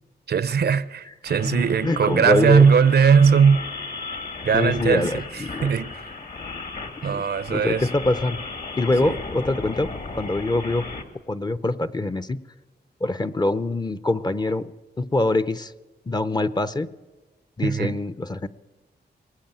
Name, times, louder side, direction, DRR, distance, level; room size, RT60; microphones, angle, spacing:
voice 1, 0.3-3.6 4.4-5.2 5.6-6.0 7.0-7.9 9.0-9.2 17.6-18.0, right 6 dB, 65° right, 0.7 m, -19 dB
sound 1, 1.2-11.0, left 3 dB, 55° left, 2.2 m, -35 dB
voice 2, 1.4-2.7 4.5-5.7 7.1-7.2 7.5-8.4 8.8-10.9 11.3-12.4 13.0-14.7 15.0-15.7 16.1-16.9 17.6-18.5, left 2 dB, 25° left, 0.7 m, -24 dB
sound 2, 2.4-7.3, left 1 dB, 90° left, 6.8 m, -50 dB
22.0 x 19.0 x 9.0 m
wide cardioid pair, 115°, 18 cm